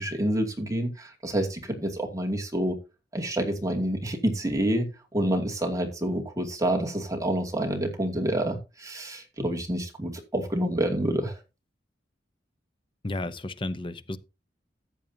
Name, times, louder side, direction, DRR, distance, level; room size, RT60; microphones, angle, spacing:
voice 1, 0.0-2.8 3.1-11.4, right 1 dB, 20° right, 2.5 m, -28 dB
voice 2, 13.0-14.2, left 2 dB, 30° left, 0.8 m, -32 dB
14.0 x 8.3 x 2.8 m
head